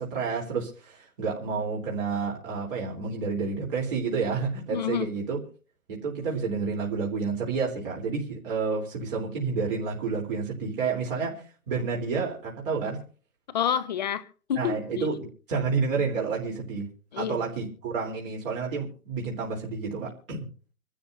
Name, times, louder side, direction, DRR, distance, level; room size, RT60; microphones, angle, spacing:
voice 1, 0.0-5.4 5.9-13.0 14.6-16.9 17.1-20.5, right 5 dB, 35° right, 3.7 m, -30 dB
voice 2, 4.7-5.1 13.5-15.1 17.1-17.4, left 9 dB, 30° left, 0.8 m, -29 dB
26.0 x 13.0 x 2.7 m
hypercardioid pair, 155°, 44 cm